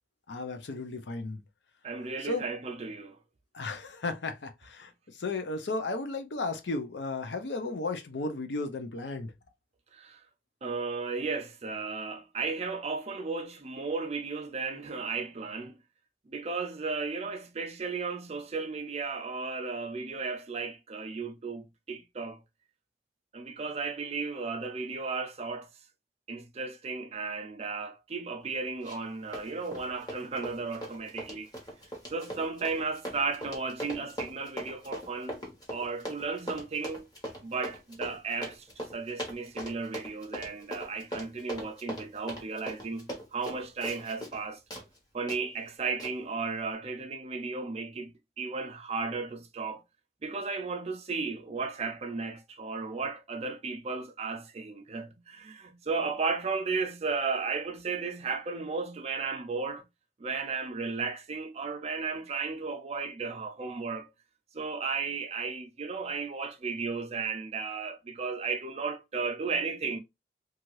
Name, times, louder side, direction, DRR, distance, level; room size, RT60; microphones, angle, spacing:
voice 1, 0.3-1.4 2.2-2.4 3.5-9.3, left 3 dB, 85° left, 0.6 m, -34 dB
voice 2, 1.8-3.2 9.9-10.2 10.6-15.8 16.3-22.4 23.3-25.7 26.3-31.5 32.1-35.4 35.7-37.1 37.4-44.6 45.1-49.8 50.2-59.8 60.2-64.1 64.5-70.0, right 4 dB, 35° right, 0.5 m, -34 dB
Run, 28.8-29.1 29.3-44.4 44.7-44.9 45.3-45.4 46.0-46.1, equal, 25° left, 1.0 m, -40 dB
2.7 x 2.4 x 3.0 m
head